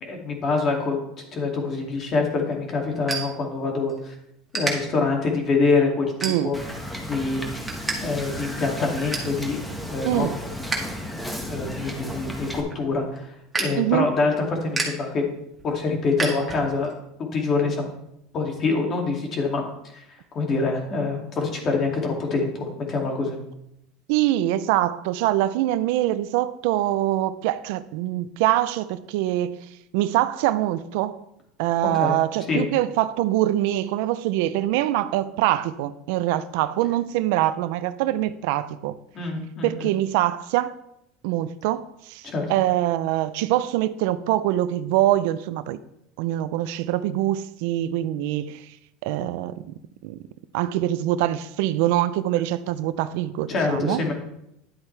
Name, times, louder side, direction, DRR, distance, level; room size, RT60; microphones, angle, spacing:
voice 1, 0.0-4.1 4.5-6.6 7.0-7.4 8.0-10.3 11.5-15.2 15.6-16.9 17.3-17.9 18.3-19.6 19.9-20.0 20.3-23.4 31.9-32.2 32.5-32.7 39.1-39.9 42.2-42.5 53.5-54.1, left 3 dB, 35° left, 1 dB, 2.4 m, -25 dB
sound 1, 1.9-4.0 4.5-4.7 5.3-5.5 6.2-6.8 7.2-8.0 8.3-8.4 8.7-9.4 9.8-10.9 11.2-16.9, right 3 dB, 10° right, 2.0 m, -32 dB
voice 2, 6.2-6.5 10.0-10.4 13.8-14.1 24.1-29.6 29.9-31.2 31.6-39.0 39.6-40.7 41.2-45.8 46.2-48.8 49.0-50.2 50.5-54.0, right 14 dB, 75° right, 14 dB, 0.5 m, -24 dB
Wind / Boat Water vehicle, 6.5-12.6, equal, 5° left, 1.4 m, -34 dB
10.5 x 8.1 x 3.3 m, 0.81 s
supercardioid pair, 125°, 0 cm